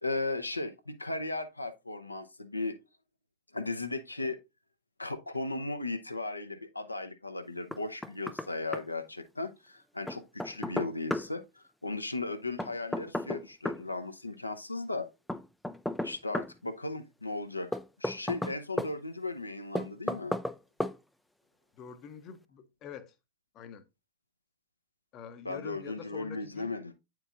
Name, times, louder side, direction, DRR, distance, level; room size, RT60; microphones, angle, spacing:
voice 1, 0.0-2.8 3.5-4.4 5.0-15.1 16.0-17.7 18.0-20.3 25.4-26.9, left 2 dB, 85° left, 0.6 m, -36 dB
Knock, 7.7-8.5 8.7-8.8 10.1-11.3 12.6-13.8 15.3-16.5 17.7-18.9 19.8-20.6 20.8-21.0, left 1 dB, 5° left, 0.3 m, -33 dB
voice 2, 21.8-23.2 23.5-23.8 25.1-26.7, left 8 dB, 35° left, 0.7 m, -46 dB
8.6 x 4.6 x 2.4 m
figure-of-eight pair, 90°, 0 cm